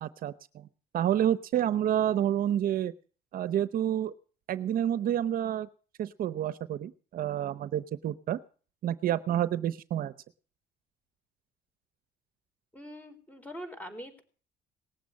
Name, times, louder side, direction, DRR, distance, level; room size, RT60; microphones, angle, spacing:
voice 1, 0.0-0.7 0.9-2.9 3.3-4.1 4.5-5.7 6.0-8.4 8.8-10.1, right 10 dB, 60° right, 16 dB, 0.8 m, -29 dB
voice 2, 12.7-14.2, equal, 10° left, 7 dB, 4.1 m, -43 dB
19.0 x 7.6 x 9.5 m, 0.40 s
cardioid pair, 110°, 17 cm